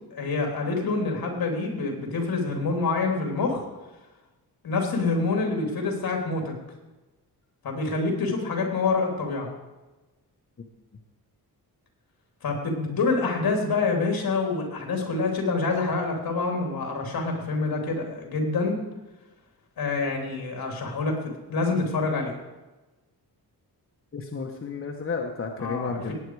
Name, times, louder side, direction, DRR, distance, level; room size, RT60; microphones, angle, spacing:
voice 1, 0.1-3.6 4.6-6.5 7.6-9.5 12.4-18.8 19.8-21.1 21.5-22.3 25.6-26.1, left 3 dB, 65° left, 2 dB, 3.4 m, -26 dB
voice 2, 24.1-26.1, left 4 dB, 35° left, 2 dB, 1.1 m, -32 dB
18.0 x 9.2 x 4.8 m, 1.1 s
wide cardioid pair, 135°, 38 cm